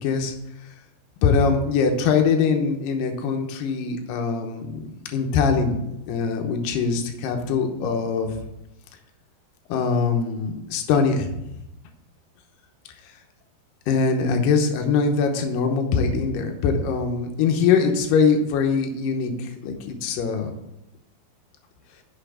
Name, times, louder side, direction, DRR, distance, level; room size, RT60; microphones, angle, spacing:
voice 1, 0.0-0.3 1.2-5.8 6.1-8.4 9.7-11.3 13.9-20.5, left 5 dB, 70° left, 4 dB, 2.3 m, -22 dB
6.9 x 5.7 x 6.7 m, 0.88 s
omnidirectional pair, 4.9 m